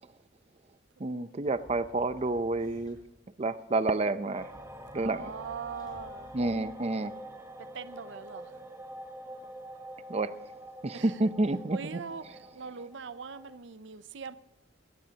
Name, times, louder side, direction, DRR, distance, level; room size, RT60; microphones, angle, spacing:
voice 1, 1.0-3.0 3.4-4.5 4.9-5.3 6.3-7.1 10.1-10.3 10.8-11.8, right 2 dB, 35° right, 0.6 m, -29 dB
sound 1, 1.4-3.3 4.4-7.2, equal, 25° left, 5.9 m, -56 dB
sound 2, 4.3-13.6, right 1 dB, 15° right, 1.0 m, -46 dB
voice 2, 4.9-6.4 7.6-8.6 10.9-11.2 11.7-14.4, right 6 dB, 75° right, 0.6 m, -42 dB
21.5 x 18.0 x 2.9 m
head